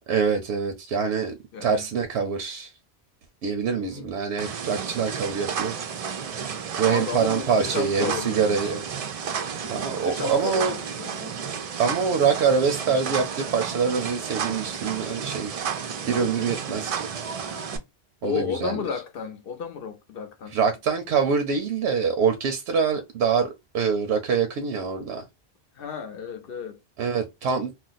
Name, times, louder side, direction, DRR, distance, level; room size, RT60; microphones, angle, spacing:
voice 1, 0.1-2.7 3.4-5.7 6.8-8.8 9.7-10.7 11.8-15.6 16.1-17.1 18.2-18.8 20.5-25.2 27.0-27.7, right 6 dB, 85° right, 0.9 m, -25 dB
voice 2, 1.5-1.9 3.8-4.1 6.8-8.7 9.5-11.3 18.2-20.6 25.8-26.8, left 6 dB, 65° left, 0.7 m, -33 dB
sound 1, 4.4-17.8, right 7 dB, 60° right, 0.4 m, -32 dB
2.5 x 2.0 x 3.9 m
omnidirectional pair, 1.1 m